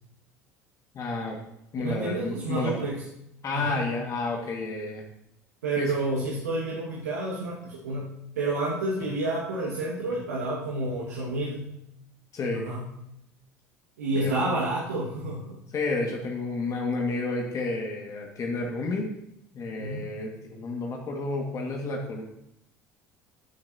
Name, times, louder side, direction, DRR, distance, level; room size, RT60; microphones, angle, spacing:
voice 1, 0.9-1.4 1.7-2.7 3.4-5.0 5.8-5.9 12.3-12.7 14.1-14.3 15.7-19.1 19.5-22.2, left 3 dB, 40° left, 0 dB, 2.0 m, -30 dB
voice 2, 1.8-3.0 3.5-3.9 5.6-11.7 12.6-12.9 14.0-15.6 19.8-20.1, right 2 dB, 75° right, -5 dB, 1.9 m, -30 dB
12.5 x 9.5 x 2.9 m, 0.82 s
figure-of-eight pair, 65°, 9 cm